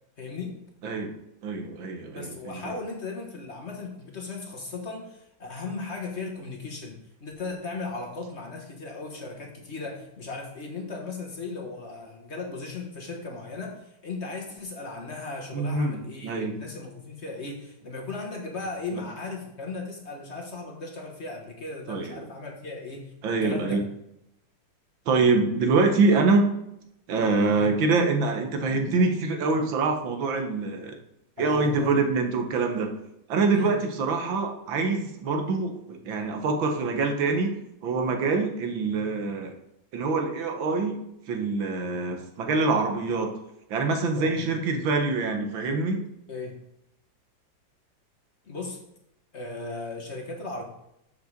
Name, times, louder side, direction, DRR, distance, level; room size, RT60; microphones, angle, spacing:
voice 1, 0.2-0.6 2.1-23.8 31.4-31.9 33.5-33.7 44.2-44.5 46.3-46.6 48.4-48.8 49.3-50.6, left 3 dB, 40° left, 0 dB, 1.4 m, -37 dB
voice 2, 1.4-2.5 15.5-16.6 21.9-22.2 23.2-23.8 25.1-26.5 27.1-31.0 31.4-32.9 33.3-37.5 37.8-39.5 39.9-41.0 41.3-43.3 43.7-46.0, right 3 dB, 90° right, 4 dB, 1.9 m, -25 dB
6.7 x 5.3 x 6.5 m, 0.81 s
omnidirectional pair, 2.1 m